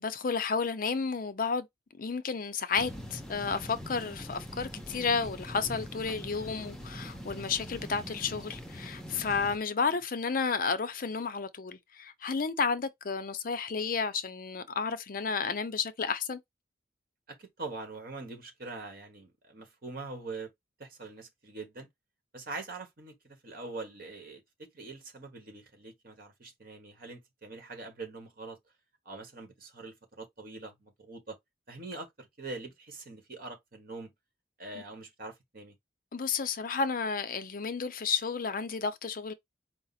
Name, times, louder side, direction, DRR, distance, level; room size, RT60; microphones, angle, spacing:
voice 1, 0.0-1.7 2.0-16.4 36.1-39.3, left 5 dB, 50° left, 0.5 m, -32 dB
sound 1, 2.8-9.6, equal, 5° left, 0.7 m, -43 dB
voice 2, 17.3-20.5 20.8-21.9 22.3-28.6 29.0-31.4 31.7-34.1 34.6-35.7, right 3 dB, 55° right, 1.5 m, -43 dB
4.8 x 2.0 x 4.2 m
head